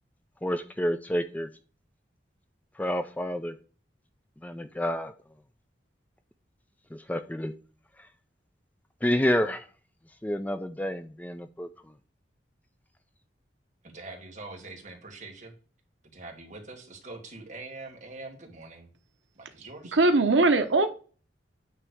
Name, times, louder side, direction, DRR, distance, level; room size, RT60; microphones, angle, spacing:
voice 1, 0.4-1.5 2.8-3.6 4.4-5.1 6.9-7.5 9.0-9.6 10.2-11.7, equal, 10° left, 9 dB, 0.4 m, -29 dB
voice 2, 13.8-15.5 16.1-18.9 19.3-20.0, right 3 dB, 45° right, 2 dB, 2.0 m, -44 dB
voice 3, 19.9-20.9, right 3 dB, 90° right, 8 dB, 0.9 m, -20 dB
9.0 x 3.3 x 6.2 m, 0.38 s
head